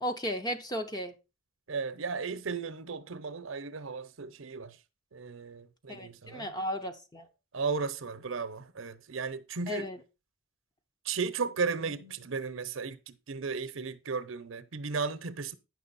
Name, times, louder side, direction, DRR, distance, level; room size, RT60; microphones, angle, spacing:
voice 1, 0.0-1.1 5.9-7.3 9.7-10.0, equal, 20° left, 0.8 m, -35 dB
voice 2, 1.7-4.8 5.1-6.5 7.5-9.9 11.0-15.5, right 5 dB, 65° right, 0.7 m, -35 dB
9.5 x 6.1 x 4.1 m
head